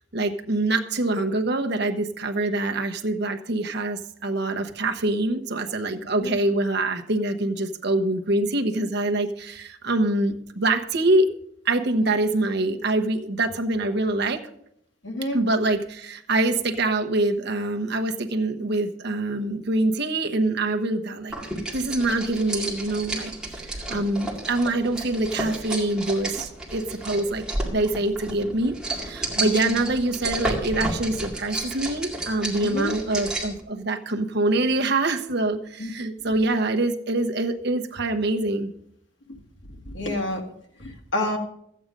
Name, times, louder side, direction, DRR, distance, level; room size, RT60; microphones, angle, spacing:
voice 1, 0.1-11.3 11.6-14.4 15.3-21.4 21.7-23.3 23.6-27.4 27.7-38.7, right 2 dB, 55° right, 5 dB, 1.0 m, -25 dB
voice 2, 15.0-15.4 29.6-29.7 32.6-32.9 35.8-35.9 39.9-40.4 40.8-41.4, left 1 dB, 65° left, 2 dB, 2.1 m, -28 dB
sound 1, 21.3-33.6, right 2 dB, 5° right, 2.1 m, -32 dB
14.0 x 8.7 x 5.2 m, 0.73 s
head